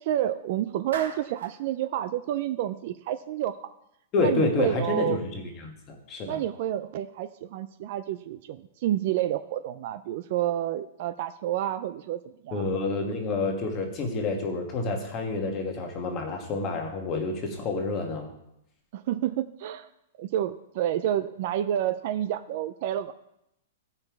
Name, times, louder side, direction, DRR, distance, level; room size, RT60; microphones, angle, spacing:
voice 1, 0.0-3.7 4.2-5.2 6.3-12.7 18.9-19.9 20.2-23.1, right 12 dB, 35° right, 11 dB, 0.3 m, -29 dB
Clapping, 0.9-1.6, right 6 dB, 70° right, 1.9 m, -38 dB
voice 2, 4.1-6.4 12.5-18.3, left 3 dB, 20° left, 3 dB, 1.3 m, -28 dB
15.5 x 5.4 x 4.6 m, 0.83 s
hypercardioid pair, 180°, 0 cm